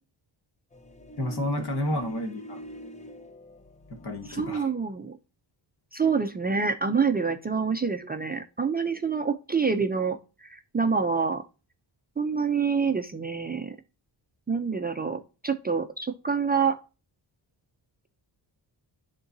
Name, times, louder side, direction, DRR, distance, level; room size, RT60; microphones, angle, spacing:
sound 1, 0.7-4.6, equal, 15° left, 0.6 m, -45 dB
voice 1, 1.2-2.6 3.9-4.7, left 1 dB, 60° left, 1.8 m, -31 dB
voice 2, 4.3-5.2 5.9-11.4 12.2-13.8 14.5-16.8, right 5 dB, 20° right, 0.4 m, -27 dB
10.5 x 3.7 x 2.6 m
wide cardioid pair, 150°, 44 cm